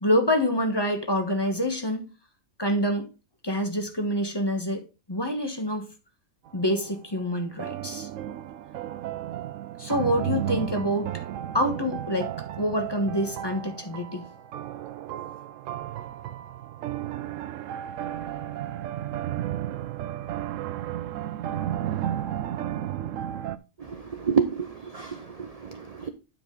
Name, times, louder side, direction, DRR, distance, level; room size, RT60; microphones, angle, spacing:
voice 1, 0.0-2.1 2.6-3.1 3.4-4.8 5.1-5.9 6.5-8.1 9.8-11.2 11.5-14.3, equal, 20° left, 1.2 m, -26 dB
sound 1, 6.5-6.9 7.6-23.6, right 11 dB, 70° right, 0.9 m, -33 dB
voice 2, 23.8-26.1, right 6 dB, 50° right, 0.4 m, -29 dB
9.3 x 5.1 x 3.9 m
omnidirectional pair, 1.5 m